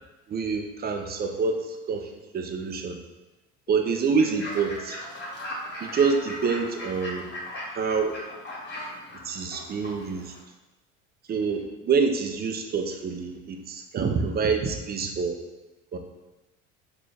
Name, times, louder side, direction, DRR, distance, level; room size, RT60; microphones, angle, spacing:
voice 1, 0.3-3.0 3.7-5.0 5.8-7.3 7.7-8.1 9.2-10.3 11.3-15.4 15.9-16.0, right 5 dB, 30° right, 5 dB, 0.4 m, -27 dB
sound 1, 3.7-8.7, left 3 dB, 80° left, 0.8 m, -50 dB
Fowl / Bird, 4.2-10.4, left 1 dB, 30° left, 1.3 m, -38 dB
3.9 x 2.4 x 3.2 m, 1.1 s
supercardioid pair, 85°, 36 cm